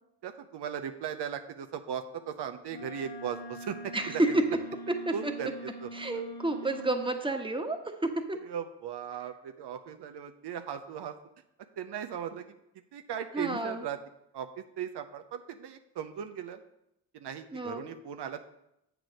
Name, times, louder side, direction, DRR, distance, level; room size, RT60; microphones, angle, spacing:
voice 1, 0.2-4.4 5.1-5.5 5.8-5.9 8.4-11.1 11.8-12.5 12.9-14.0 14.3-16.6 17.1-18.5, right 8 dB, 70° right, 7 dB, 0.6 m, -38 dB
Wind instrument woodwind instrument, 2.7-7.1, right 1 dB, 65° left, 1.1 m, -44 dB
voice 2, 3.9-4.3 5.0-5.3 5.9-7.8 8.3-8.4 13.3-13.8 17.5-17.9, right 2 dB, 10° right, 4 dB, 1.2 m, -30 dB
7.6 x 4.6 x 6.3 m, 0.82 s
supercardioid pair, 45°, 42 cm